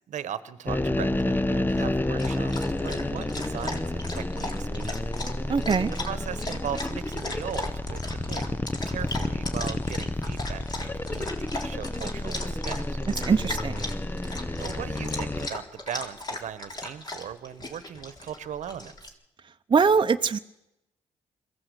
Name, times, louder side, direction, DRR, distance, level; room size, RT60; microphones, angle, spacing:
voice 1, 0.1-5.0 6.0-8.6 8.9-13.0 14.6-18.9, right 9 dB, 75° right, 14 dB, 1.3 m, -38 dB
sound 1, 0.7-15.5, left 1 dB, 15° left, 1.0 m, -30 dB
Dog, 1.7-19.1, left 2 dB, 35° left, 3.7 m, -38 dB
voice 2, 5.5-5.9 13.3-13.9 19.7-20.4, right 5 dB, 40° right, 6 dB, 0.9 m, -22 dB
22.0 x 15.5 x 8.3 m, 0.87 s
cardioid pair, 65°, 13 cm